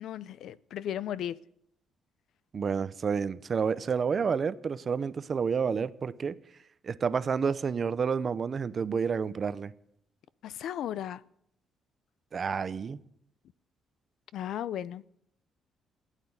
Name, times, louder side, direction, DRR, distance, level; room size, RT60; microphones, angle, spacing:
voice 1, 0.0-1.4 10.4-11.2 14.3-15.0, left 10 dB, 65° left, 0.5 m, -35 dB
voice 2, 2.5-6.3 6.8-9.7 12.3-13.0, right 6 dB, 35° right, 0.6 m, -29 dB
16.0 x 9.2 x 9.6 m
cardioid pair, 155°, 0 cm